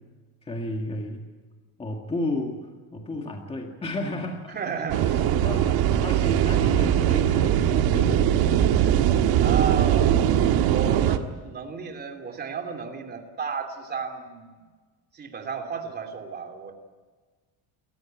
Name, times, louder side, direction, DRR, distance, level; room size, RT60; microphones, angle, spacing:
voice 1, 0.4-1.3 1.8-4.6 5.0-8.3, left 1 dB, 15° left, 2 dB, 2.0 m, -33 dB
voice 2, 4.5-5.1 9.4-10.2 10.6-14.6 15.1-16.7, right 5 dB, 25° right, 3 dB, 2.9 m, -33 dB
sound 1, 4.9-11.2, right 10 dB, 70° right, 1.6 m, -21 dB
28.0 x 15.0 x 9.2 m, 1.4 s
cardioid pair, 170°, 39 cm